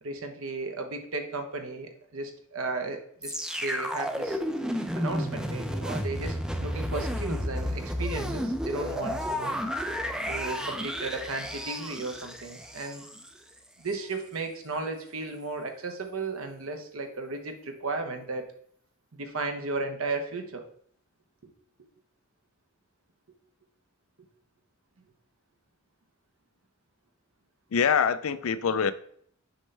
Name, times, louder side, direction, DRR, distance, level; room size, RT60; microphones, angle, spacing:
voice 1, 0.0-3.3 3.6-4.4 4.9-9.6 10.3-13.0 13.8-18.5 19.1-20.6 21.4-21.5, right 3 dB, 70° right, 5 dB, 1.0 m, -35 dB
sound 1, 3.2-13.3 13.9-14.0, equal, 5° right, 0.4 m, -32 dB
voice 2, 27.7-28.9, left 6 dB, 70° left, 15 dB, 0.4 m, -24 dB
6.3 x 5.4 x 3.3 m, 0.63 s
head